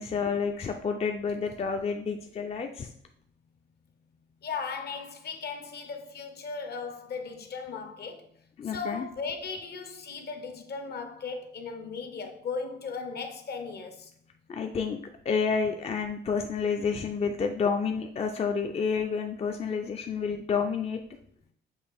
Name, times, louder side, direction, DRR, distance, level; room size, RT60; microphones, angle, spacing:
voice 1, 0.0-2.9 8.6-9.1 14.5-15.0 15.3-21.0, left 5 dB, 30° left, 0.4 m, -29 dB
voice 2, 4.4-8.3 8.6-14.1, left 5 dB, 55° left, 0.8 m, -37 dB
6.2 x 2.4 x 3.5 m
cardioid pair, 90°, 20 cm